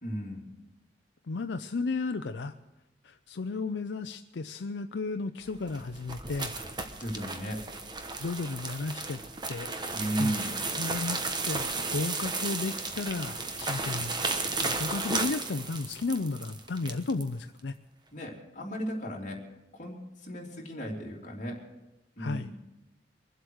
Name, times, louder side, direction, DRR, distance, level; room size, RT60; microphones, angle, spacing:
voice 1, 0.0-0.5 7.0-7.7 9.9-10.6 18.1-19.4 19.7-21.6 22.2-22.5, right 1 dB, 45° left, -2 dB, 3.1 m, -35 dB
voice 2, 1.3-2.6 3.0-6.5 8.2-9.2 9.5-9.7 10.2-10.4 10.7-14.1 14.6-17.8 22.2-22.5, left 3 dB, 80° left, 8 dB, 0.5 m, -33 dB
sound 1, 5.5-17.3, right 3 dB, 25° right, 1.1 m, -34 dB
23.5 x 8.0 x 6.4 m, 0.97 s
head